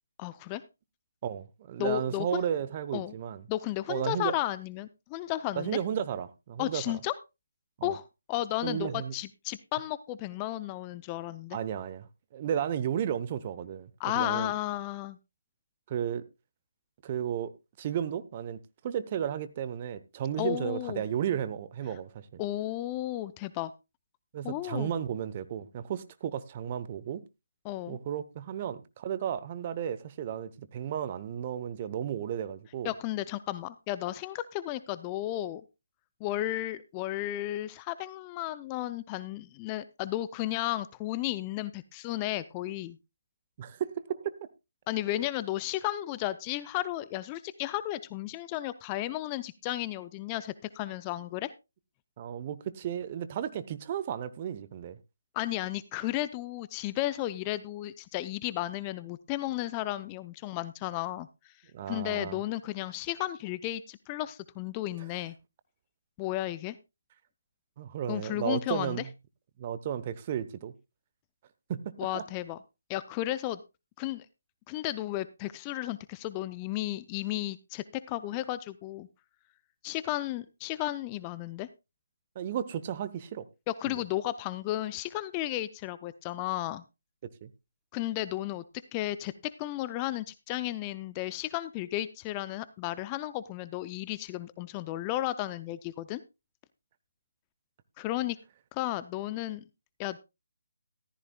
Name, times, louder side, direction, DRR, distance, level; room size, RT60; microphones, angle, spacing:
voice 1, 0.2-0.6 1.8-2.5 2.9-3.1 3.5-5.8 6.6-7.1 7.8-11.6 14.0-15.2 20.4-21.0 22.4-23.7 24.4-24.9 27.6-28.0 32.8-35.6 36.2-43.0 44.9-51.5 55.3-61.5 61.9-65.3 66.2-66.8 68.1-69.0 72.0-72.6 72.9-73.6 74.0-74.3 74.7-79.1 79.8-81.7 83.7-86.8 87.9-88.6 88.9-96.2 98.0-98.4 98.7-99.6 100.0-100.2, left 15 dB, 20° left, 0.5 m, -33 dB
voice 2, 1.2-3.4 3.9-4.3 5.6-7.0 7.8-7.9 8.6-9.1 11.5-12.1 12.3-14.5 15.9-16.2 17.0-18.6 18.8-22.4 24.3-27.2 27.9-32.9 43.6-44.3 52.2-55.0 61.7-62.4 67.8-69.1 69.6-70.7 71.7-72.2 82.3-83.5 83.9-84.0 87.4-87.5, right 9 dB, 30° right, 0.8 m, -33 dB
14.0 x 13.5 x 2.3 m
figure-of-eight pair, 145°, 0 cm